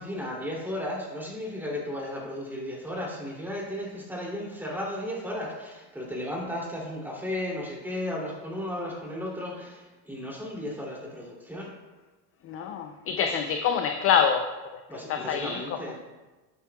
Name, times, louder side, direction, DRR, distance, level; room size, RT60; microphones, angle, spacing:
voice 1, 0.0-11.8 14.9-16.0, left 1 dB, 5° right, -3 dB, 2.6 m, -34 dB
voice 2, 12.4-14.8 15.1-15.8, left 7 dB, 30° left, 6 dB, 0.4 m, -26 dB
11.0 x 8.4 x 2.3 m, 1.2 s
supercardioid pair, 105°, 46 cm